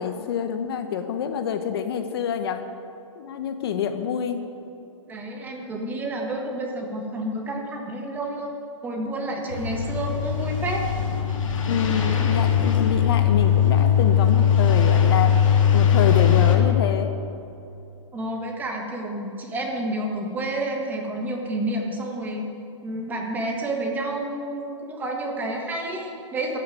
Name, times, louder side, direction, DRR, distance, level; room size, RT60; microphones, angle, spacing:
voice 1, 0.0-2.6 3.2-4.4 11.7-17.1, left 8 dB, 50° left, 8 dB, 0.9 m, -27 dB
voice 2, 5.1-10.8 18.1-22.4 22.8-26.6, right 1 dB, 10° right, 1 dB, 1.4 m, -30 dB
sound 1, 9.5-16.6, left 8 dB, 85° left, 2.2 m, -20 dB
13.5 x 6.5 x 9.3 m, 2.8 s
hypercardioid pair, 155°, 16 cm